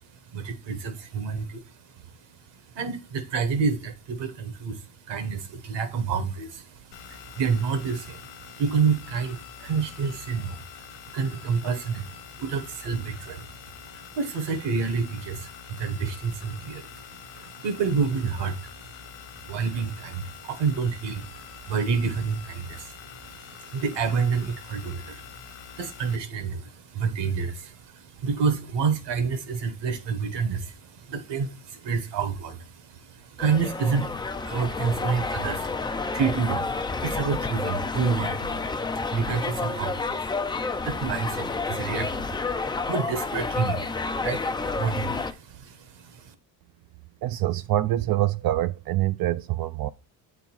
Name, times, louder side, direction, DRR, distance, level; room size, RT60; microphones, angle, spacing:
voice 1, 0.0-46.3, right 5 dB, 70° right, 1.5 m, -29 dB
sound 1, 6.9-26.2, left 10 dB, 85° left, 1.0 m, -45 dB
sound 2, 33.4-45.3, left 4 dB, 10° left, 0.4 m, -30 dB
voice 2, 47.2-49.9, right 14 dB, 55° right, 0.5 m, -25 dB
8.0 x 4.0 x 4.6 m
cardioid pair, 95°, 45 cm